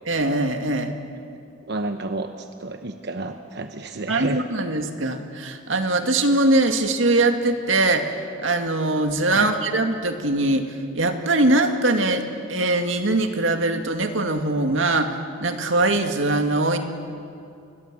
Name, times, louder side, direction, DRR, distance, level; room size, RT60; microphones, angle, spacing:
voice 1, 0.1-1.0 4.1-12.2 12.5-16.8, right 2 dB, 90° right, 6 dB, 2.1 m, -22 dB
voice 2, 1.7-4.4 9.3-9.5, right 2 dB, 60° right, 7 dB, 1.0 m, -30 dB
29.0 x 21.5 x 7.5 m, 2.5 s
head